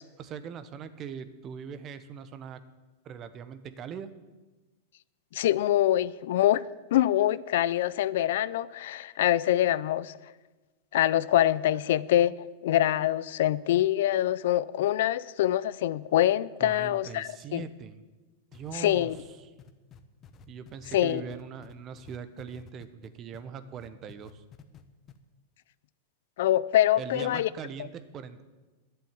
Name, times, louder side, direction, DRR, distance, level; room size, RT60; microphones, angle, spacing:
voice 1, 0.2-2.6 3.0-4.1 16.6-18.0 18.5-19.5 20.5-24.4 26.9-28.4, right 7 dB, 35° right, 1.1 m, -41 dB
voice 2, 5.3-6.6 6.9-10.1 10.9-12.3 12.6-17.6 18.7-19.2 20.9-21.2 26.4-27.5, left 13 dB, 70° left, 0.4 m, -25 dB
sound 1, 18.5-23.4 23.8-24.8 25.1-25.2, left 7 dB, 35° left, 1.1 m, -51 dB
10.5 x 7.6 x 9.8 m
hypercardioid pair, 110°, 0 cm